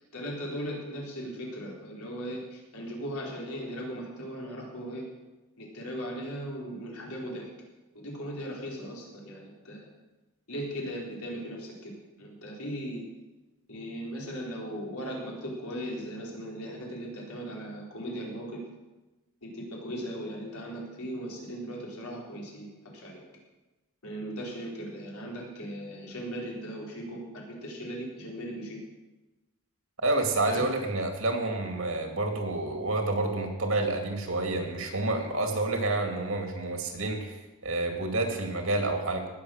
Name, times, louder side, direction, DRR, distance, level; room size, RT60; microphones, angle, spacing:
voice 1, 0.1-5.0 5.6-7.5 7.9-9.9 10.5-11.9 12.2-13.0 13.7-18.6 19.4-23.2 24.0-28.8 30.5-30.7, equal, 80° left, -3 dB, 4.3 m, -38 dB
voice 2, 30.0-39.3, right 2 dB, 65° right, 3 dB, 2.4 m, -29 dB
19.0 x 7.4 x 6.5 m, 1.1 s
head